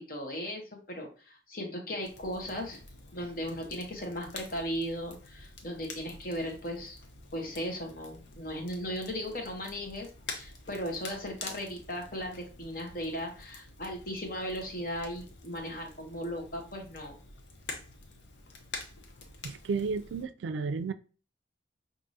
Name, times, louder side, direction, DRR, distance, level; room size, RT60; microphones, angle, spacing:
voice 1, 0.0-2.8 3.1-7.0 7.3-17.2, equal, 50° left, 1.0 m, -37 dB
Crackle, 2.0-20.2, left 3 dB, 80° left, 0.8 m, -47 dB
voice 2, 19.4-20.9, right 4 dB, 85° right, 0.3 m, -32 dB
4.7 x 2.6 x 2.6 m
head